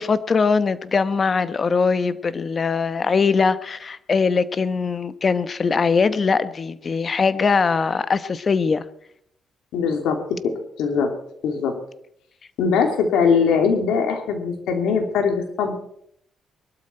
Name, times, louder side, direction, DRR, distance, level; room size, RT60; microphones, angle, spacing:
voice 1, 0.0-8.8, left 5 dB, 40° left, 14 dB, 1.0 m, -21 dB
voice 2, 9.7-10.2 10.4-11.1 11.4-11.7 12.6-15.7, left 6 dB, 85° left, 5 dB, 2.8 m, -21 dB
21.5 x 12.0 x 4.5 m, 0.71 s
cardioid pair, 90°, 0 cm